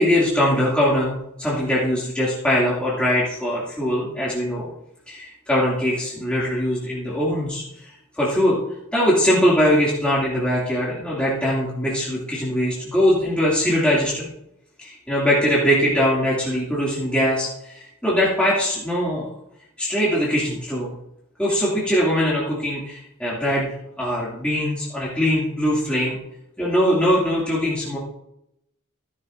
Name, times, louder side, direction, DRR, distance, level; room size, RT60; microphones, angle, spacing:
voice 1, 0.0-4.7 5.1-8.6 8.9-14.3 14.8-19.3 19.8-20.9 21.4-23.7 24.0-26.2 26.6-28.0, equal, 5° left, -8 dB, 2.5 m, -21 dB
15.5 x 10.5 x 2.6 m, 0.81 s
head